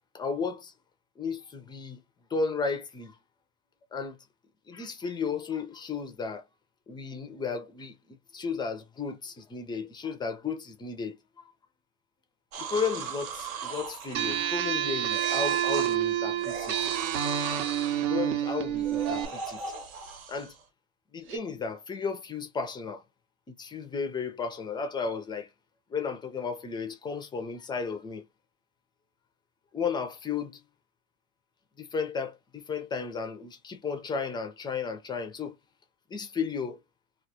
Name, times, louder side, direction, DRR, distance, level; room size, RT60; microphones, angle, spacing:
voice 1, 0.1-0.7 1.2-2.0 2.3-3.1 3.9-4.2 4.7-6.4 6.9-11.5 12.6-16.9 18.1-19.6 20.3-20.5 21.1-23.0 23.5-25.5 25.9-28.3 29.7-30.6 31.8-35.6 36.1-36.8, left 5 dB, 10° left, 0.3 m, -34 dB
sound 1, 12.5-14.7 15.1-16.0 16.4-18.0 18.7-20.6 21.3-21.4, right 5 dB, 80° right, 1.0 m, -38 dB
sound 2, 14.1-19.3, right 11 dB, 60° right, 0.7 m, -28 dB
2.2 x 2.1 x 2.7 m
hypercardioid pair, 90°, 42 cm